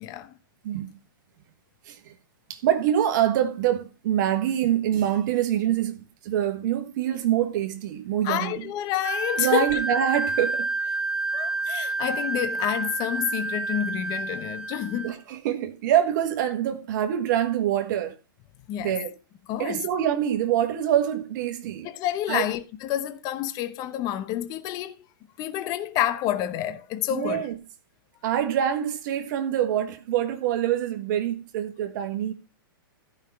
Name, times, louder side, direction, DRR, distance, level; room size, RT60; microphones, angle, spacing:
voice 1, 0.0-0.3 8.2-9.8 11.3-15.1 18.7-19.0 19.5-19.8 21.8-25.0 25.4-27.5, left 12 dB, 30° left, 0.9 m, -29 dB
voice 2, 2.5-6.0 6.2-8.6 9.4-10.9 15.0-18.1 18.8-19.1 19.6-21.9 22.3-22.5 27.1-27.5 28.2-32.3, right 10 dB, 55° right, 1.6 m, -25 dB
Wind instrument woodwind instrument, 9.0-15.2, right 3 dB, 10° right, 1.8 m, -29 dB
14.0 x 5.7 x 5.8 m
hypercardioid pair, 140°, 12 cm